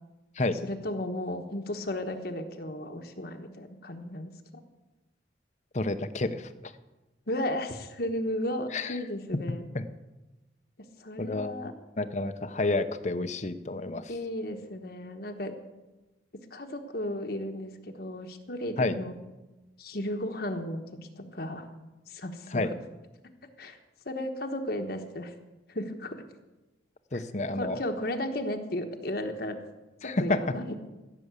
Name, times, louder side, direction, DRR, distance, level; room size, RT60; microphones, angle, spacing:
voice 1, 0.6-4.6 7.3-9.6 11.0-11.7 14.1-15.5 16.5-19.1 19.8-21.7 22.1-22.6 23.6-23.8 24.0-25.3 25.7-26.2 27.1-27.2 27.5-29.6 30.0-30.8, left 1 dB, 55° left, 5 dB, 1.2 m, -34 dB
voice 2, 5.7-6.7 8.7-9.0 9.5-9.8 11.2-14.1 18.8-19.0 22.5-22.7 27.1-27.8 30.0-30.4, left 2 dB, 40° left, 11 dB, 0.7 m, -30 dB
15.5 x 6.9 x 8.2 m, 1.1 s
head